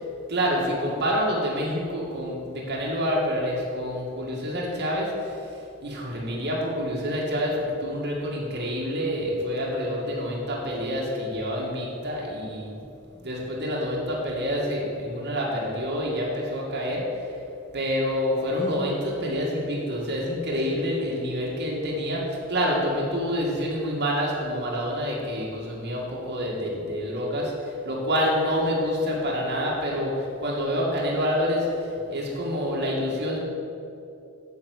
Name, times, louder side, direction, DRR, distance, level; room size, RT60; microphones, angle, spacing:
voice 1, 0.3-12.8 13.2-17.3 17.7-33.4, equal, 50° right, -3 dB, 2.0 m, -27 dB
8.3 x 8.2 x 6.4 m, 2.8 s
head